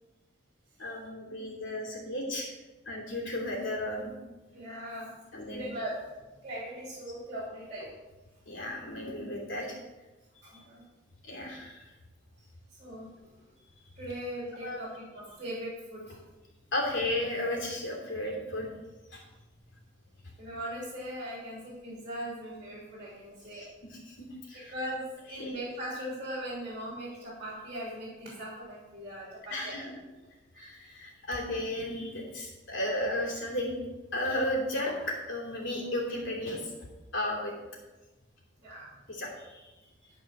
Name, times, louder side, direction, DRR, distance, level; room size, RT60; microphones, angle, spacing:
voice 1, 0.8-2.5 2.9-4.2 5.3-5.6 8.5-9.8 10.3-10.6 11.2-11.9 14.6-14.8 16.7-18.7 19.1-19.2 23.5-24.2 24.5-24.7 25.4-25.6 29.5-29.9 30.5-33.8 34.1-36.7 37.1-37.5 39.1-39.7, left 1 dB, 65° left, -2 dB, 2.8 m, -34 dB
voice 2, 4.5-5.1 5.4-6.1 6.4-7.9 10.4-10.8 12.8-13.3 14.0-16.2 20.4-23.7 24.5-30.0 38.6-38.9, equal, 30° right, -5 dB, 2.9 m, -39 dB
12.5 x 4.7 x 6.6 m, 1.1 s
head